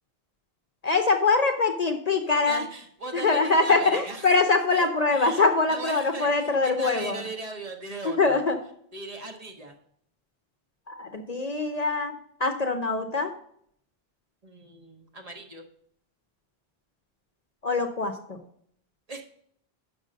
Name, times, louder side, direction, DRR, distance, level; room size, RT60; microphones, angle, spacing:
voice 1, 0.8-2.6 3.1-7.2 8.0-8.6 10.9-12.1 12.4-13.3 17.6-18.4, left 3 dB, 45° left, 5 dB, 0.7 m, -23 dB
voice 2, 2.2-4.3 4.7-5.4 5.7-8.4 8.9-9.7 14.4-15.6 19.1-19.2, right 2 dB, 40° right, 3 dB, 1.1 m, -38 dB
6.3 x 5.3 x 6.3 m, 0.66 s
omnidirectional pair, 1.0 m